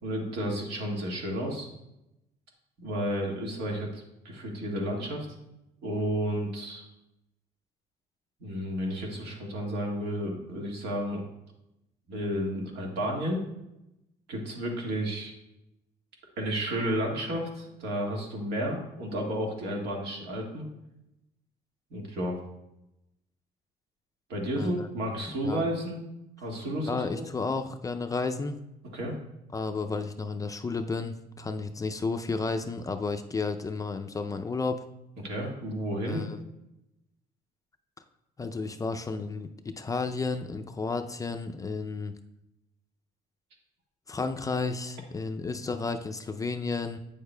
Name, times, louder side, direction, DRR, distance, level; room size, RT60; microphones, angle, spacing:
voice 1, 0.0-1.7 2.8-5.3 5.8-6.8 8.4-11.2 12.1-13.5 14.3-15.3 16.4-20.6 21.9-22.4 24.3-26.0 26.4-27.2 28.9-29.1 35.2-36.2, equal, 80° right, -1 dB, 1.7 m, -32 dB
voice 2, 24.6-24.9 25.2-25.6 26.9-28.5 29.5-34.8 36.0-36.5 38.4-42.1 44.1-47.0, left 4 dB, 20° left, 7 dB, 0.4 m, -32 dB
8.6 x 6.7 x 2.2 m, 0.89 s
cardioid pair, 110°, 17 cm